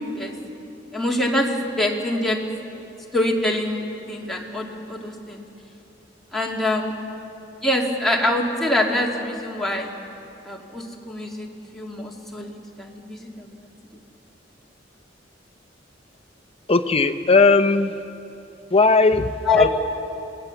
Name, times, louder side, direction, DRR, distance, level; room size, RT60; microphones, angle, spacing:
voice 1, 0.9-2.4 3.1-5.5 6.3-6.9 7.6-9.9 10.4-11.5 11.7-13.7 19.5-19.6, left 1 dB, ahead, -3 dB, 2.4 m, -24 dB
voice 2, 16.7-17.9 18.7-19.7, left 3 dB, 30° left, 8 dB, 0.8 m, -17 dB
26.5 x 18.5 x 7.1 m, 2.8 s
head